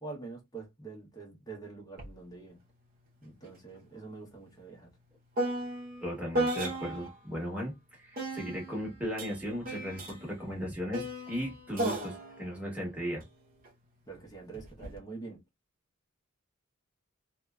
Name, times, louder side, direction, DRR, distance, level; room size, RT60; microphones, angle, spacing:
voice 1, 0.0-2.6 3.2-4.9 14.1-15.4, right 4 dB, 15° left, 0.8 m, -45 dB
sound 1, 2.0-2.1 2.5-7.2 8.1-13.7 14.5-15.0, right 1 dB, 40° right, 0.8 m, -36 dB
voice 2, 6.0-13.2, equal, 5° right, 1.0 m, -36 dB
2.6 x 2.1 x 2.2 m
head